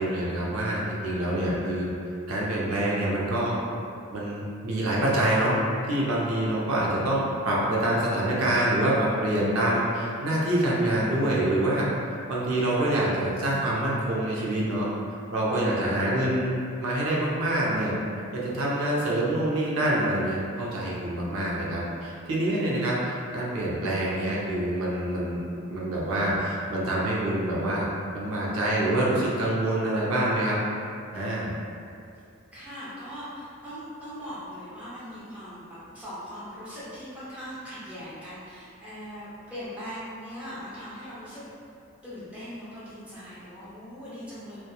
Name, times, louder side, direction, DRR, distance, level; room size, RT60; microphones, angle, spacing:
voice 1, 0.0-1.9 2.3-3.6 4.1-5.6 5.9-11.9 12.3-14.9 15.3-16.5 16.8-17.9 18.3-25.4 25.7-27.9 28.1-30.6 31.1-31.6, right 1 dB, 75° right, -5 dB, 0.5 m, -26 dB
voice 2, 32.5-41.4 42.0-44.6, equal, 5° right, -11 dB, 0.6 m, -40 dB
2.8 x 2.1 x 2.2 m, 2.5 s
head